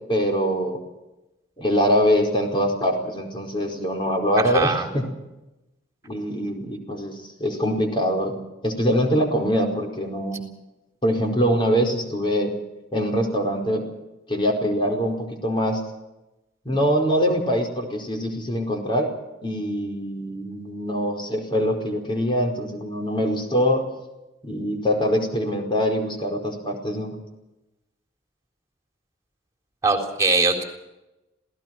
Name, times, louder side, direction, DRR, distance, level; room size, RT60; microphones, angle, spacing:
voice 1, 0.1-0.8 1.6-5.1 6.0-8.4 8.6-10.4 11.0-12.5 12.9-13.8 14.3-15.8 16.6-19.1 19.4-23.8 24.4-27.1, equal, 25° left, 2 dB, 4.8 m, -23 dB
voice 2, 4.4-4.8 29.8-30.6, right 3 dB, 15° right, 4 dB, 3.9 m, -21 dB
27.0 x 18.0 x 6.0 m, 0.97 s
head